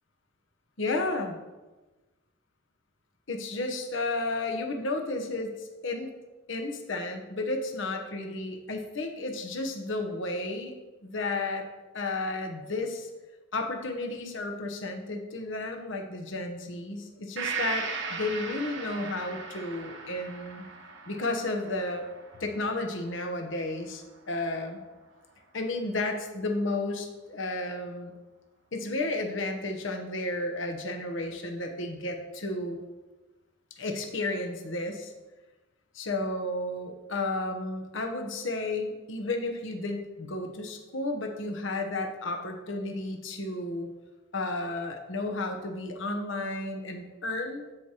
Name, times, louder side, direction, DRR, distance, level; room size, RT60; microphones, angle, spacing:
voice 1, 0.8-1.4 3.3-6.1 6.5-10.8 11.0-11.7 11.9-13.1 13.5-20.7 21.1-22.1 22.4-24.8 25.5-28.1 28.7-32.8 33.8-35.1 35.9-43.9 44.3-47.6, left 2 dB, 60° left, 4 dB, 0.9 m, -32 dB
Gong, 17.4-25.0 25.4-25.5, right 5 dB, 55° right, 1.0 m, -39 dB
13.5 x 4.8 x 2.9 m, 1.2 s
head